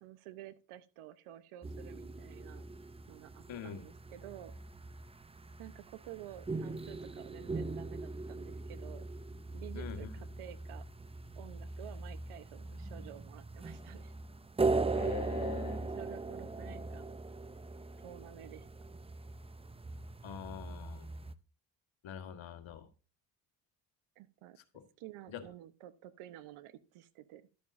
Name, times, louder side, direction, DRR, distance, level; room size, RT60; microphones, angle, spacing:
voice 1, 0.0-2.6 3.1-4.5 5.6-9.1 9.5-10.8 11.4-14.1 15.7-17.1 18.0-18.8 24.2-24.6 25.0-27.4, right 13 dB, 80° right, 14 dB, 1.0 m, -51 dB
sound 1, 1.6-21.3, right 3 dB, 10° right, 0.5 m, -40 dB
voice 2, 3.5-3.9 9.7-10.1 14.9-15.8 20.2-21.1 22.0-22.9 25.3-25.4, left 8 dB, 65° left, 7 dB, 1.5 m, -43 dB
11.5 x 8.7 x 2.6 m, 0.32 s
supercardioid pair, 65°, 50 cm